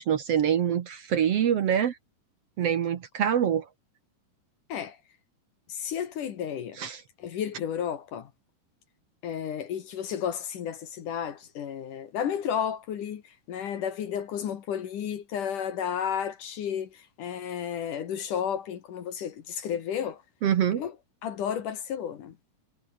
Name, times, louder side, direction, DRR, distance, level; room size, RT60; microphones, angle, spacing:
voice 1, 0.0-2.0 2.6-3.7 6.8-7.0 20.4-20.8, right 9 dB, 60° right, 1.8 m, -25 dB
voice 2, 5.7-6.8 7.2-8.3 9.2-20.2 20.8-21.0 21.2-22.3, left 8 dB, 65° left, 3.2 m, -32 dB
omnidirectional pair, 4.1 m